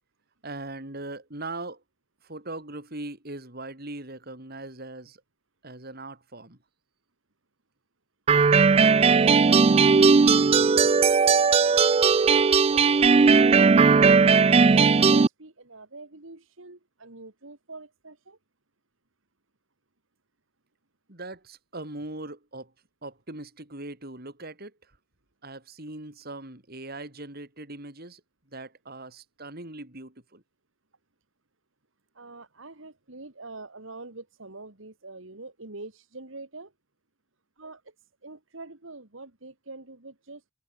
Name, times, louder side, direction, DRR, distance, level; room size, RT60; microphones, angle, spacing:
voice 1, 0.4-1.8 2.2-5.2 5.6-6.6 21.1-22.7 23.0-24.9 25.4-28.2 28.5-30.4, right 2 dB, 45° right, 3.7 m, -40 dB
sound 1, 8.3-15.3, right 5 dB, 30° right, 0.4 m, -18 dB
voice 2, 10.3-10.7 12.3-14.2 14.6-18.4 32.1-36.7 37.6-37.9 38.2-40.4, right 3 dB, 65° right, 2.3 m, -44 dB
head